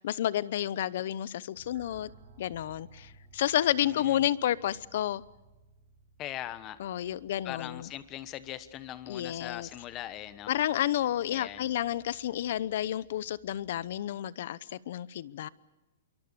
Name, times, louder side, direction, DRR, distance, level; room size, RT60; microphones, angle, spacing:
voice 1, 0.0-2.1 2.4-5.2 6.8-7.9 9.1-9.7 10.5-15.5, left 12 dB, 55° left, 20 dB, 0.9 m, -30 dB
sound 1, 1.5-14.0, right 4 dB, 40° right, 5.0 m, -60 dB
voice 2, 3.8-4.3 6.2-6.8 7.4-10.5 11.3-11.7, left 13 dB, 25° left, 15 dB, 1.2 m, -41 dB
27.0 x 23.5 x 6.9 m, 1.1 s
hypercardioid pair, 165°, 0 cm